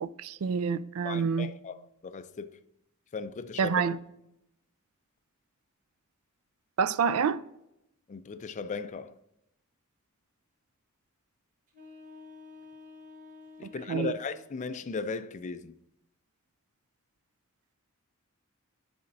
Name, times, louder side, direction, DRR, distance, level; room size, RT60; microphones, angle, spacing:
voice 1, 0.0-1.5 3.6-4.0 6.8-7.4 13.9-14.1, right 6 dB, 75° right, 0.4 m, -27 dB
voice 2, 1.0-2.6 3.1-3.8 8.1-9.2 13.6-15.8, left 4 dB, 35° left, 0.4 m, -37 dB
sound 1, 11.7-14.7, left 4 dB, 40° right, 1.2 m, -50 dB
9.9 x 4.3 x 2.5 m
head